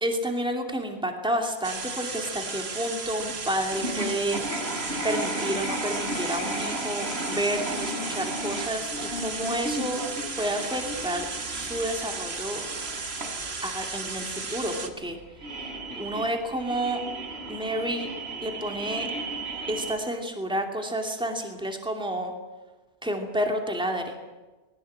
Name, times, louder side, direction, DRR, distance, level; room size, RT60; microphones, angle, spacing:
voice 1, 0.0-4.4 5.0-10.0 10.4-11.3 11.5-12.6 13.6-15.2 15.5-17.0 17.5-18.1 18.4-19.1 19.7-22.3 23.0-24.1, right 1 dB, 5° right, 3 dB, 2.6 m, -30 dB
sound 1, 1.6-14.9, right 4 dB, 70° right, 2.0 m, -35 dB
sound 2, 3.2-3.3 3.7-20.0, right 1 dB, 90° right, 4.0 m, -35 dB
20.5 x 19.5 x 8.7 m, 1.2 s
omnidirectional pair, 1.1 m